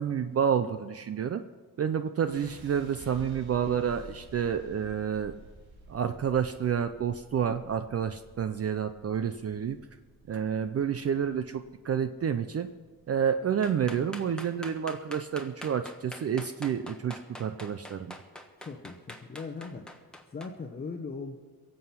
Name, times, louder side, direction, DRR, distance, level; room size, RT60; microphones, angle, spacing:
voice 1, 0.0-1.4 1.8-5.3 5.9-9.8 10.3-12.7 13.1-18.1, right 8 dB, 40° right, 10 dB, 0.5 m, -29 dB
sound 1, 2.3-14.3, right 2 dB, 90° right, 5.3 m, -52 dB
sound 2, 13.6-20.5, left 1 dB, ahead, 1.2 m, -44 dB
voice 2, 18.6-19.9 20.3-21.4, left 4 dB, 25° left, 1 dB, 0.9 m, -39 dB
23.0 x 7.8 x 5.8 m, 1.3 s
wide cardioid pair, 145°, 36 cm